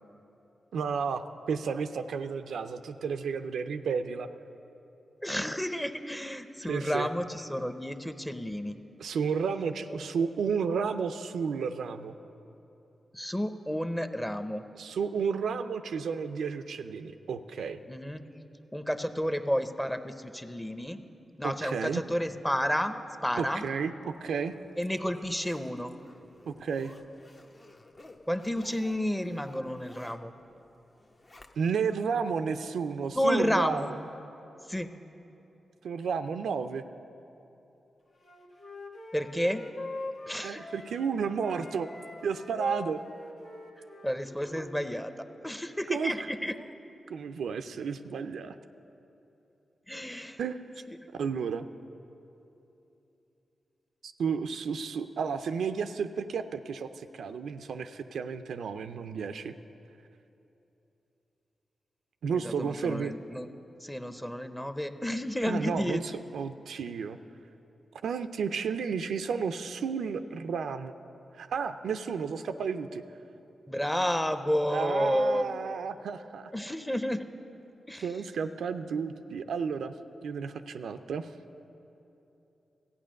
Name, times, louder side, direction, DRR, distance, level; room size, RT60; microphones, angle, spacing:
voice 1, 0.7-4.3 6.7-7.1 9.0-12.1 14.8-17.8 21.4-22.0 23.4-24.5 26.5-26.9 31.6-34.0 35.8-36.8 40.4-41.9 42.2-43.0 45.9-46.1 47.1-48.5 50.4-50.6 51.1-51.7 54.0-59.5 62.2-63.1 65.4-66.0 66.3-67.2 68.0-70.9 71.4-73.0 74.7-76.5 78.0-79.9 80.2-81.3, right 6 dB, 80° right, 8 dB, 0.4 m, -32 dB
voice 2, 5.2-8.8 9.9-10.1 13.1-14.6 17.9-18.2 18.7-21.0 21.4-23.0 23.2-23.6 24.8-26.0 28.3-30.3 33.1-33.9 34.7-34.9 39.1-39.6 40.3-40.7 44.0-45.1 45.4-46.7 49.9-50.4 50.9-51.0 62.3-63.5 63.8-66.0 73.7-75.5 76.5-77.3 77.9-78.1, equal, 10° left, 9 dB, 0.8 m, -31 dB
Zipper (clothing), 24.3-31.9 32.3-32.4, left 2 dB, 40° left, 0.9 m, -55 dB
Wind instrument woodwind instrument, 38.2-41.1 41.4-44.9, left 2 dB, 70° left, 1.4 m, -43 dB
13.5 x 8.7 x 6.4 m, 3.0 s
supercardioid pair, 45°, 0 cm